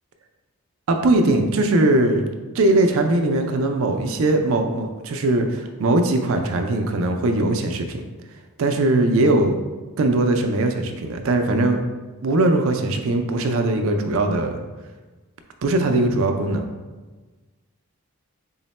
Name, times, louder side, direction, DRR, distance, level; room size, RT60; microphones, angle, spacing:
voice 1, 0.9-2.2 2.5-8.0 8.6-9.6 10.0-11.8 12.2-14.6 15.6-16.6, right 2 dB, 65° right, 5 dB, 0.4 m, -20 dB
3.8 x 2.1 x 4.1 m, 1.3 s
head